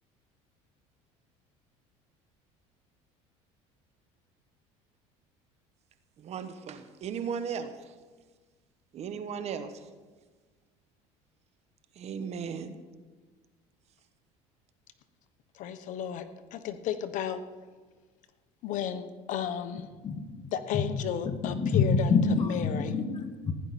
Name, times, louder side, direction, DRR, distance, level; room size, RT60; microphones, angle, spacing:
voice 1, 6.2-8.0 8.9-9.9 11.9-12.8, right 7 dB, 45° right, 10 dB, 1.2 m, -36 dB
voice 2, 15.5-16.3 16.5-17.4 18.6-19.9 20.5-22.9, left 9 dB, 60° left, 10 dB, 1.0 m, -33 dB
voice 3, 20.0-20.8 21.2-23.5, left 4 dB, 35° left, 7 dB, 1.4 m, -27 dB
16.0 x 10.5 x 4.2 m, 1.4 s
supercardioid pair, 105°, 15 cm